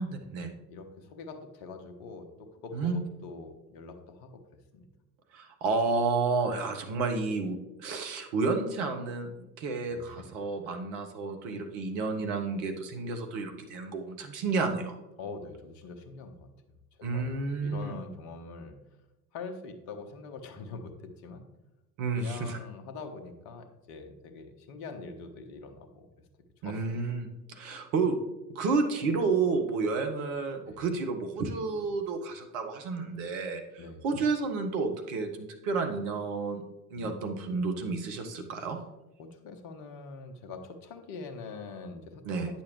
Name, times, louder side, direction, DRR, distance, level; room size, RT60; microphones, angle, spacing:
voice 1, 0.0-0.5 2.7-3.0 5.3-9.3 9.6-15.0 17.0-18.0 22.0-22.6 26.6-28.2 28.5-36.6 36.9-38.8 42.2-42.5, right 4 dB, 55° right, 5 dB, 1.3 m, -31 dB
voice 2, 0.7-4.3 4.7-4.9 9.9-10.3 15.2-16.5 17.1-18.8 19.3-21.4 22.1-26.1 26.6-27.0 30.7-30.8 33.8-34.0 37.0-37.9 39.2-42.6, left 4 dB, 55° left, 6 dB, 1.3 m, -44 dB
9.9 x 6.9 x 3.2 m, 1.0 s
figure-of-eight pair, 70°, 46 cm